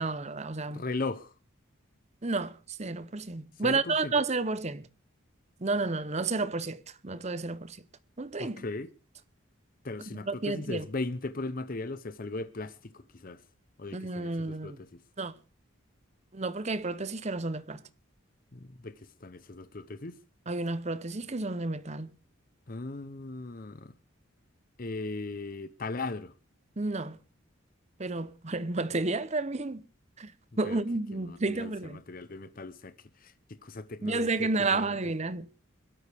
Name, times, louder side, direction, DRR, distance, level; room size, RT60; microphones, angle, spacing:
voice 1, 0.0-0.8 2.2-4.9 5.6-7.8 8.2-8.6 10.2-10.9 13.9-14.8 15.2-15.3 16.3-17.8 20.5-22.2 26.8-27.2 28.0-29.8 30.2-30.3 30.6-32.0 34.0-35.5, right 3 dB, 30° right, 0.8 m, -31 dB
voice 2, 0.7-1.3 3.6-4.1 8.4-8.9 9.8-13.4 13.8-15.0 18.5-20.2 22.7-23.9 24.8-26.3 30.6-30.8 31.1-35.0, left 3 dB, 45° left, 0.8 m, -38 dB
22.5 x 12.5 x 3.4 m
head